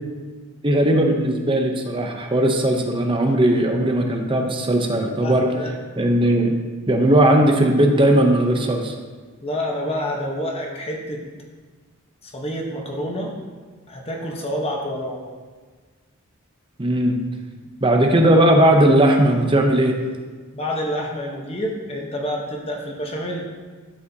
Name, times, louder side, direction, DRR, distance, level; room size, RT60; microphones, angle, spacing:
voice 1, 0.6-5.5 6.0-6.5 6.9-8.9 16.8-17.2 17.8-19.9, right 1 dB, 20° right, 3 dB, 0.6 m, -17 dB
voice 2, 5.0-5.7 9.4-11.2 12.2-13.3 13.9-15.3 17.6-17.7 20.5-23.5, equal, 25° left, 0 dB, 1.0 m, -28 dB
12.0 x 4.9 x 2.8 m, 1.5 s
head